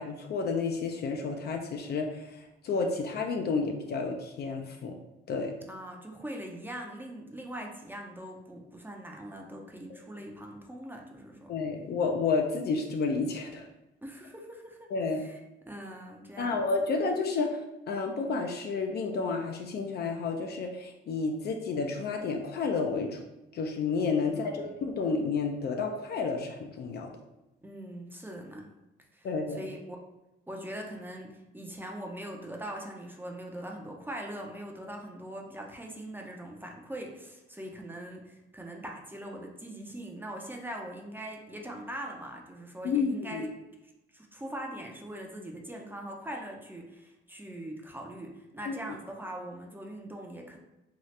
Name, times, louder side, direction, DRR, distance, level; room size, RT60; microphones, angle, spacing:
voice 1, 0.0-5.0 5.3-5.6 11.5-13.7 14.9-15.2 16.4-17.6 17.9-23.2 23.5-27.1 29.2-29.6 42.8-43.5 48.7-48.8, left 4 dB, 55° left, 3 dB, 0.4 m, -31 dB
voice 2, 5.7-11.5 14.0-14.8 15.2-15.4 15.7-16.7 24.3-24.8 27.6-28.7 29.1-30.0 30.5-43.5 44.1-50.6, right 1 dB, 10° right, 0 dB, 0.5 m, -42 dB
2.8 x 2.3 x 3.1 m, 0.97 s
cardioid pair, 90°, 20 cm